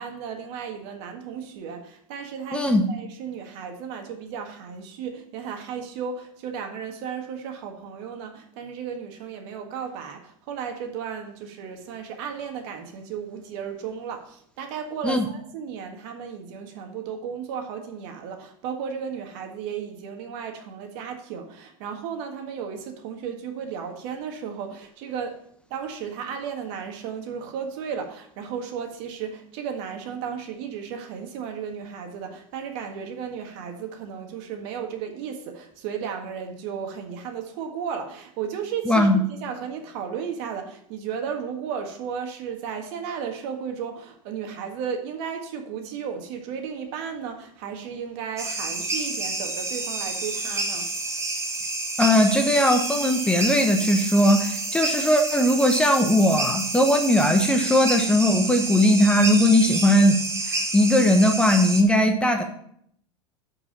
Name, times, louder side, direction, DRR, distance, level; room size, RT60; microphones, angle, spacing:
voice 1, 0.0-25.4 25.7-50.9, right 7 dB, 55° right, 5 dB, 1.7 m, -34 dB
voice 2, 2.5-2.9 15.0-15.2 38.9-39.2 52.0-60.2 60.5-62.4, left 1 dB, 5° left, 4 dB, 1.0 m, -19 dB
sound 1, 48.4-61.8, right 2 dB, 15° right, 1.5 m, -29 dB
8.2 x 4.8 x 7.3 m, 0.67 s
hypercardioid pair, 110°, 17 cm